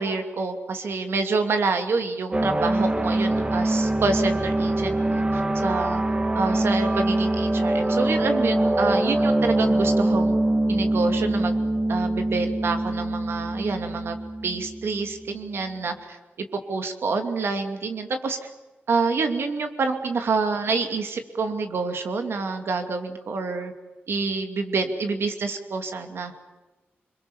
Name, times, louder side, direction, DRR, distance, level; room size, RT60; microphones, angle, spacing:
voice 1, 0.0-6.0 6.3-10.3 10.7-11.6 11.9-14.2 14.4-18.4 18.9-23.7 24.1-26.3, right 4 dB, 70° right, 6 dB, 2.5 m, -27 dB
sound 1, 2.3-15.4, right 1 dB, 25° right, 1.8 m, -24 dB
28.5 x 22.0 x 7.1 m, 1.1 s
wide cardioid pair, 100°, 4 cm